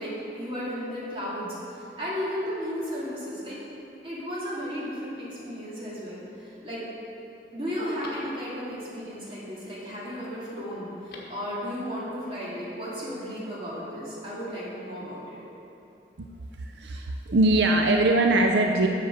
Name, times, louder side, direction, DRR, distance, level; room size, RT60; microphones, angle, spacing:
voice 1, 0.0-3.6 4.0-6.8 7.5-15.4, equal, 30° right, -8 dB, 2.5 m, -34 dB
Telephone, 5.7-6.3 6.8-6.9 7.3-8.8 10.8-11.5 11.8-11.9, left 1 dB, 55° left, 1.4 m, -49 dB
voice 2, 16.6-18.9, right 2 dB, 80° right, 3 dB, 0.5 m, -22 dB
7.9 x 6.6 x 6.5 m, 2.8 s
head